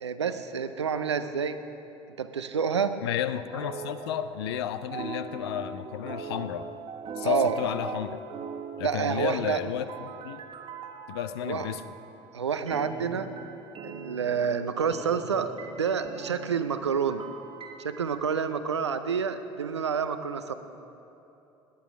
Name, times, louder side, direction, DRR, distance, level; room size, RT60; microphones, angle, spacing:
voice 1, 0.0-1.6 2.2-2.9 7.2-7.6 8.8-9.6 11.4-11.7 12.3-13.3 13.8-17.3 17.8-20.5, right 6 dB, 80° right, 10 dB, 0.6 m, -28 dB
voice 2, 3.0-6.7 7.2-8.2 8.8-10.4 11.1-11.8, left 10 dB, 65° left, 13 dB, 0.6 m, -32 dB
sound 1, 3.5-4.6 4.9-12.1 12.7-18.2, right 5 dB, 35° right, 1.5 m, -41 dB
18.5 x 10.0 x 5.9 m, 3.0 s
figure-of-eight pair, 65°, 14 cm